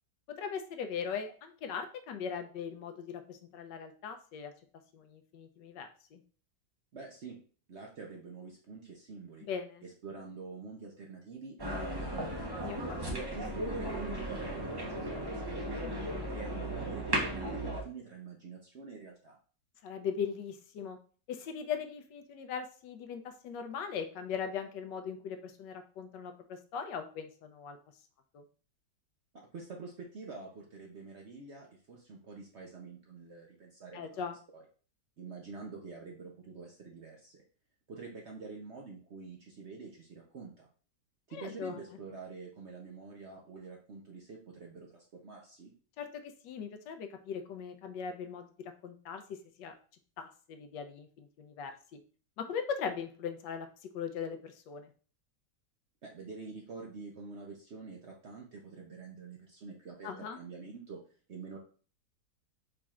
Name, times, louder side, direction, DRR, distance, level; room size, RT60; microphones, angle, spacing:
voice 1, 0.4-4.5 4.9-6.2 9.4-9.8 12.6-13.0 19.8-21.0 21.3-27.8 28.3-28.4 33.9-34.4 41.3-41.8 46.0-49.7 50.2-52.0 52.4-54.9 60.0-60.4, left 6 dB, 80° left, 7 dB, 1.3 m, -39 dB
voice 2, 6.9-7.4 7.7-9.5 9.8-12.6 13.1-15.9 16.3-19.4 29.3-34.2 34.5-34.6 35.2-37.4 37.9-40.7 41.3-45.7 56.0-61.0 61.3-61.6, right 4 dB, 55° right, 0 dB, 0.8 m, -47 dB
sound 1, 11.6-17.8, right 1 dB, 25° right, 0.5 m, -36 dB
5.1 x 4.3 x 2.4 m, 0.40 s
omnidirectional pair, 1.9 m